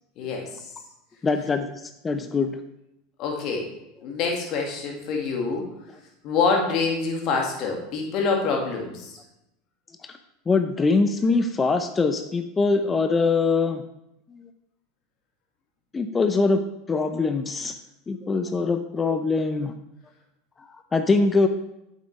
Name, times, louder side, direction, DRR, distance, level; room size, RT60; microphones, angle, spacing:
voice 1, 1.2-1.7 2.0-2.6 10.5-13.8 15.9-16.6 16.9-17.7 18.1-19.7 20.9-21.5, left 4 dB, 20° left, 8 dB, 0.6 m, -22 dB
voice 2, 3.2-3.7 4.0-5.7 6.2-9.1, left 4 dB, 50° left, 1 dB, 2.1 m, -26 dB
8.6 x 7.4 x 3.3 m, 0.85 s
figure-of-eight pair, 80°, 0 cm